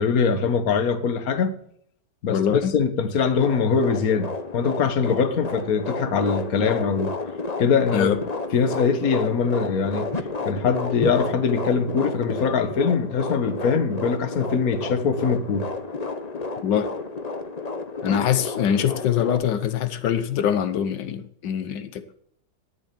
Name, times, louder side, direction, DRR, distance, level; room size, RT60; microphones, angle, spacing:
voice 1, 0.0-1.5 2.2-7.1 7.6-8.2 8.5-10.1 10.4-15.7, left 5 dB, 55° left, 1.7 m, -22 dB
voice 2, 2.3-2.7 7.9-8.2 16.6-16.9 18.0-22.2, left 9 dB, 90° left, 1.6 m, -23 dB
sound 1, 3.2-19.4, left 3 dB, 25° left, 1.0 m, -31 dB
17.5 x 7.1 x 8.6 m
omnidirectional pair, 1.9 m